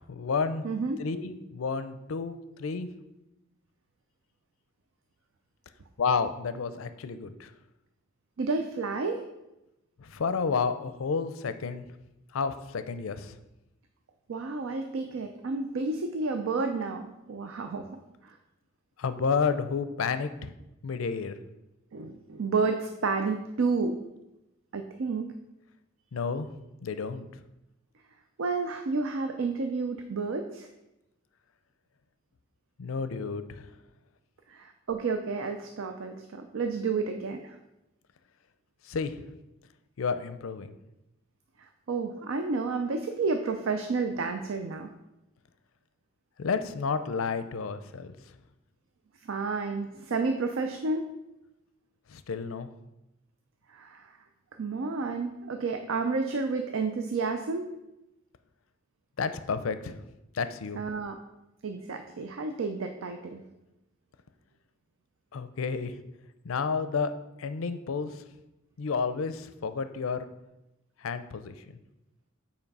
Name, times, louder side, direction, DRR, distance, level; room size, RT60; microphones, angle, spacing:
voice 1, 0.0-0.6 1.0-2.9 6.0-7.5 10.0-11.9 12.3-13.4 19.0-20.5 20.8-21.4 26.1-26.5 26.8-27.3 32.8-33.7 38.8-39.2 40.0-40.7 46.4-48.2 52.1-52.7 59.2-60.0 60.3-60.8 65.3-66.0 66.4-67.1 67.4-68.2 68.8-70.3 71.0-71.8, left 5 dB, 85° left, 11 dB, 0.5 m, -31 dB
voice 2, 0.6-1.0 8.4-9.2 14.3-17.9 18.2-18.4 21.9-24.0 24.7-25.3 28.4-30.7 34.5-37.6 41.6-44.9 49.2-51.1 53.7-54.2 54.6-57.7 60.8-61.2 61.6-63.4, right 4 dB, 75° right, 6 dB, 0.5 m, -31 dB
5.8 x 4.4 x 5.3 m, 0.93 s
head